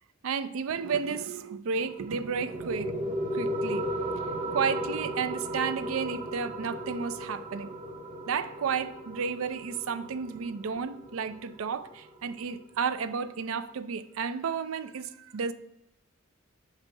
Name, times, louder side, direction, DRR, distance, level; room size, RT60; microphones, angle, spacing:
voice 1, 0.2-3.0 3.3-3.9 4.5-7.7 8.3-15.5, right 6 dB, 75° right, 0.4 m, -32 dB
sound 1, 1.8-12.8, equal, 30° right, 0.7 m, -36 dB
8.1 x 2.7 x 5.3 m
head